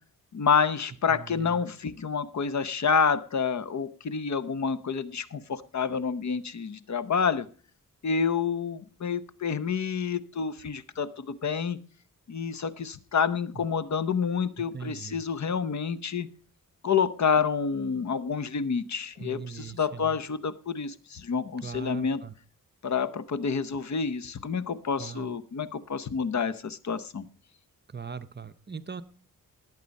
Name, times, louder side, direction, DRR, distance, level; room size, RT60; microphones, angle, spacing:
voice 1, 0.3-7.5 8.0-11.8 12.3-16.3 16.8-22.2 22.8-27.2, left 6 dB, 55° left, 14 dB, 0.9 m, -28 dB
voice 2, 1.1-1.6 13.5-13.7 14.6-15.3 19.2-20.2 21.6-22.3 25.0-25.4 27.9-29.0, right 6 dB, 30° right, 11 dB, 0.7 m, -40 dB
18.5 x 8.4 x 5.3 m, 0.43 s
wide cardioid pair, 125°, 34 cm